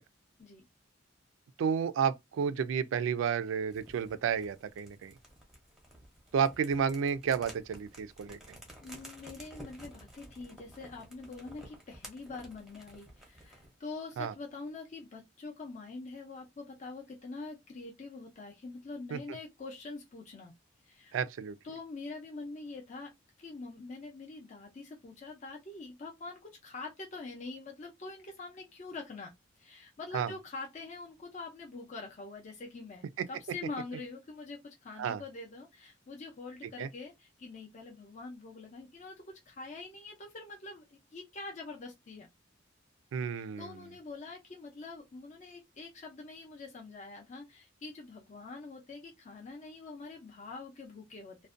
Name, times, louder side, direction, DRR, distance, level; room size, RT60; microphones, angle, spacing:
voice 1, 1.6-5.1 6.3-8.6 14.2-14.3 19.1-19.2 21.1-21.6 30.1-30.3 35.0-35.2 36.8-36.9 43.1-43.8, right 7 dB, 80° right, 0.3 m, -31 dB
sound 1, 3.7-13.7, right 1 dB, 5° right, 0.6 m, -53 dB
voice 2, 8.8-20.5 20.8-21.2 21.6-23.1 23.4-29.3 29.6-42.3 43.3-51.5, left 3 dB, 40° left, 0.5 m, -45 dB
2.5 x 2.1 x 2.4 m
head